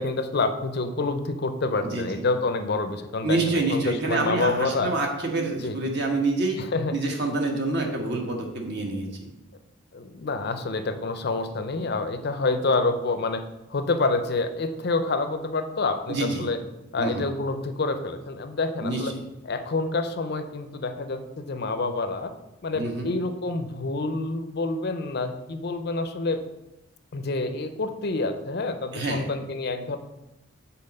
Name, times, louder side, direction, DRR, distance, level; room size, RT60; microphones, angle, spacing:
voice 1, 0.0-4.9 5.6-5.8 6.6-7.0 9.9-13.4 13.7-16.6 16.9-19.1 19.4-22.3 22.6-26.4 27.1-30.0, left 3 dB, 50° left, 9 dB, 0.5 m, -27 dB
voice 2, 1.8-2.2 3.2-6.6 6.9-9.3 16.1-16.5 17.0-17.3 18.8-19.2 22.7-23.1 28.9-29.3, right 2 dB, 55° right, 1 dB, 1.4 m, -27 dB
7.5 x 4.1 x 5.4 m, 0.97 s
head